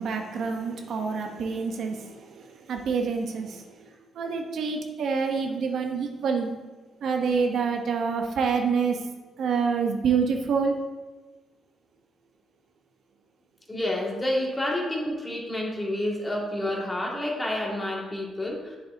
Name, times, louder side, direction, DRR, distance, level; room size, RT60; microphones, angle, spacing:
voice 1, 0.0-6.5 7.0-9.0 9.4-10.8, right 5 dB, 70° right, 3 dB, 0.8 m, -27 dB
voice 2, 13.7-18.8, left 1 dB, 20° left, -2 dB, 1.9 m, -29 dB
7.7 x 6.6 x 2.7 m, 1.2 s
supercardioid pair, 65°, 0 cm